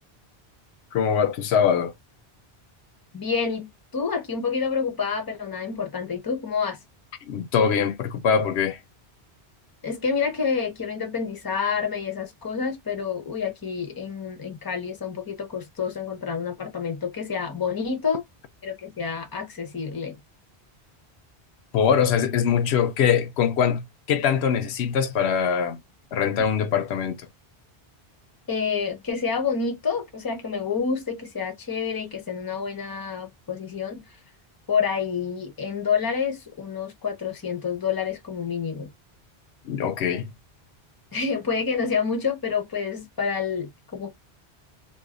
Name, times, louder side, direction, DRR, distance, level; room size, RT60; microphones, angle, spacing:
voice 1, 0.9-1.9 7.3-8.8 21.7-25.8 26.1-27.3 39.6-40.3, left 7 dB, 85° left, 0.8 m, -23 dB
voice 2, 3.1-6.8 9.8-18.2 18.6-20.2 28.5-34.2 34.7-38.9 41.1-44.1, left 6 dB, 25° left, 0.6 m, -28 dB
2.5 x 2.5 x 3.6 m
omnidirectional pair, 1.1 m